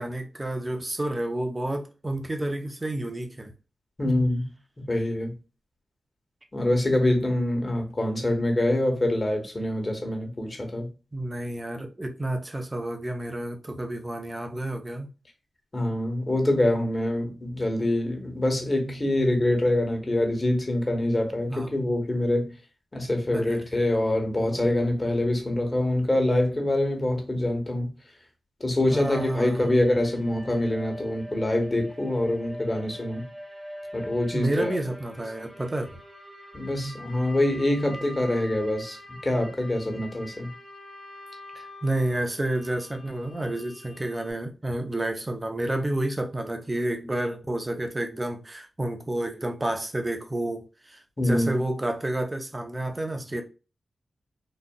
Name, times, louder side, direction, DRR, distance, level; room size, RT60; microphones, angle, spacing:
voice 1, 0.0-3.5 11.1-15.1 21.5-21.7 23.3-23.6 28.9-29.8 34.3-35.9 41.5-53.4, right 1 dB, 25° right, 0.7 m, -30 dB
voice 2, 4.0-4.5 4.8-5.3 6.5-10.9 15.7-22.5 22.9-27.9 28.6-33.3 33.9-34.8 36.5-40.5 51.2-51.6, left 1 dB, 35° left, 1.3 m, -25 dB
sound 1, 28.9-44.3, equal, 5° right, 1.2 m, -43 dB
4.0 x 2.5 x 2.3 m
cardioid pair, 60°, 0 cm